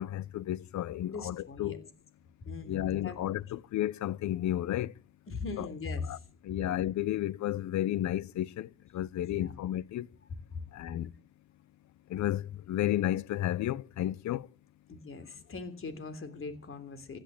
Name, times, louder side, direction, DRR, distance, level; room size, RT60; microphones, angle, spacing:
voice 1, 0.0-1.9 2.7-4.9 5.6-5.7 6.0-6.2 6.4-10.1 10.7-11.1 12.1-14.5, left 13 dB, 70° left, 0.7 m, -32 dB
voice 2, 1.1-1.8 2.4-3.1 5.3-6.0 9.3-9.5 10.5-10.6 14.9-17.2, left 4 dB, 45° left, 3.2 m, -40 dB
15.5 x 10.5 x 8.5 m
cardioid pair, 90°, 30 cm